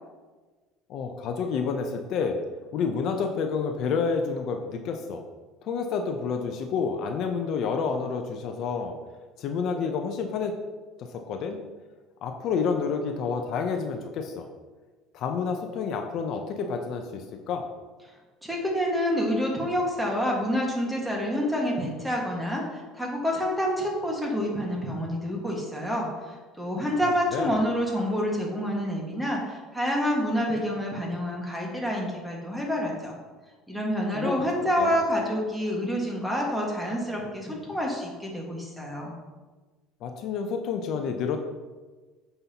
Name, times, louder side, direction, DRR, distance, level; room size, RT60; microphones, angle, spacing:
voice 1, 0.9-2.4 2.7-5.2 5.6-8.9 9.4-10.5 11.1-11.6 12.2-14.5 15.1-17.7 27.3-27.6 34.1-34.4 34.8-35.0 40.0-41.4, left 5 dB, 55° left, 5 dB, 0.6 m, -29 dB
voice 2, 18.4-33.1 33.7-39.1, equal, 5° right, -2 dB, 1.6 m, -28 dB
9.4 x 5.6 x 2.9 m, 1.3 s
cardioid pair, 135°, 0 cm